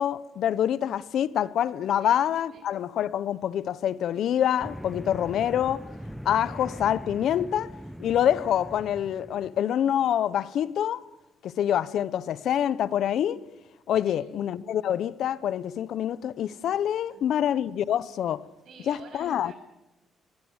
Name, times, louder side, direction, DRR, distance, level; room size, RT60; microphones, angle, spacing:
voice 1, 0.0-5.9 6.2-7.7 8.0-11.0 11.4-13.4 13.9-18.4 18.9-19.5, left 10 dB, 70° left, 0.9 m, -26 dB
sound 1, 4.6-9.6, equal, ahead, 1.0 m, -41 dB
voice 2, 17.1-17.4 18.6-19.5, right 5 dB, 65° right, 7.9 m, -49 dB
22.5 x 22.5 x 8.2 m
cardioid pair, 90°, 0 cm